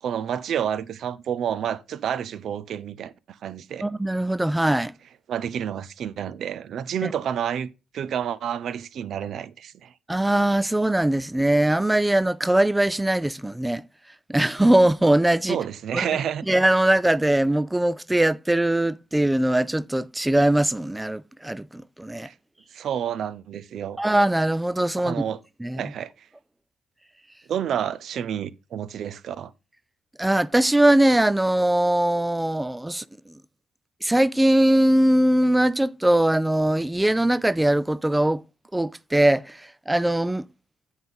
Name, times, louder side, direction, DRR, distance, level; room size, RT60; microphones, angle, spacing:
voice 1, 0.0-3.8 5.3-7.7 7.9-9.9 15.5-16.4 22.2-22.3 22.7-24.0 25.0-25.4 25.8-26.3 27.5-29.5, right 9 dB, 65° right, 0.5 m, -29 dB
voice 2, 3.8-4.9 7.0-7.1 10.1-13.9 14.3-15.6 15.9-16.0 16.5-22.3 24.0-25.2 25.6-25.8 30.2-33.3 34.0-38.4 38.7-40.4, right 1 dB, 10° right, 0.3 m, -21 dB
7.8 x 4.0 x 5.3 m
cardioid pair, 90°, 0 cm